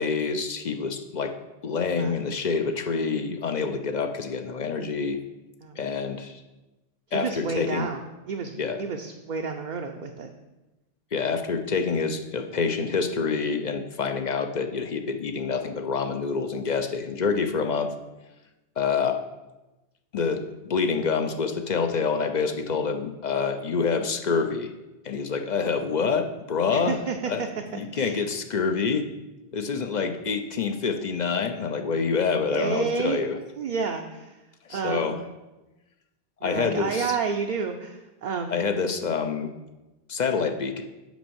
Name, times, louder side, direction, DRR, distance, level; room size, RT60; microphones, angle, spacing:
voice 1, 0.0-1.3 1.6-5.2 5.8-6.3 7.1-7.9 8.6-8.8 11.1-17.9 18.8-19.2 20.1-24.7 25.0-27.0 27.3-27.4 27.7-29.0 29.5-33.4 34.6-35.2 36.4-37.2 38.5-39.5 40.1-40.8, left 5 dB, 50° left, 6 dB, 0.6 m, -27 dB
voice 2, 5.6-6.3 7.1-8.0 8.3-10.4 26.7-28.2 32.5-33.2 33.6-34.3 34.7-35.2 36.4-38.6, right 5 dB, 55° right, 3 dB, 0.6 m, -30 dB
6.1 x 5.2 x 6.9 m, 1.1 s
omnidirectional pair, 1.1 m